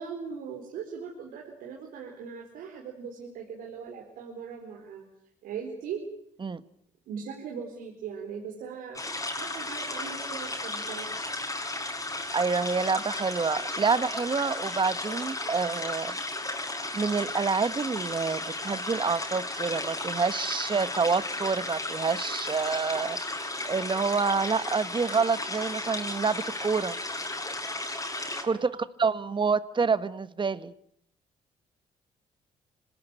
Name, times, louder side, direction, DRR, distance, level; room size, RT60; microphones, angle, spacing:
voice 1, 0.0-5.1 5.4-6.0 7.1-9.0 9.3-11.1 28.5-28.9, right 6 dB, 85° right, 0 dB, 4.4 m, -39 dB
sound 1, 9.0-28.4, left 2 dB, 25° left, 5.6 m, -34 dB
voice 2, 12.3-16.1 16.9-23.2 23.6-27.0 28.4-28.7 29.0-30.7, right 5 dB, 35° right, 14 dB, 1.6 m, -27 dB
26.0 x 18.5 x 9.2 m, 0.70 s
supercardioid pair, 70°, 14 cm